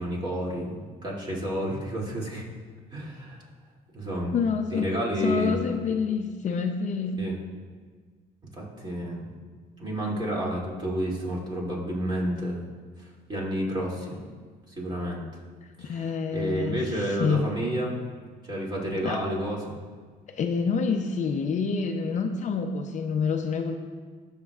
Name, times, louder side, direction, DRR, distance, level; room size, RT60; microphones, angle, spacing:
voice 1, 0.0-2.4 2.9-3.4 3.9-4.3 4.7-5.6 7.2-7.4 8.5-9.4 9.8-12.7 13.0-14.2 14.7-15.3 15.8-17.9 18.4-19.7, right 1 dB, 25° right, -4 dB, 2.7 m, -30 dB
voice 2, 4.3-5.0 5.2-7.2 15.8-17.4 19.0-19.2 20.3-23.7, left 5 dB, 45° left, 5 dB, 0.6 m, -27 dB
19.0 x 6.5 x 2.4 m, 1.6 s
cardioid pair, 110°, 17 cm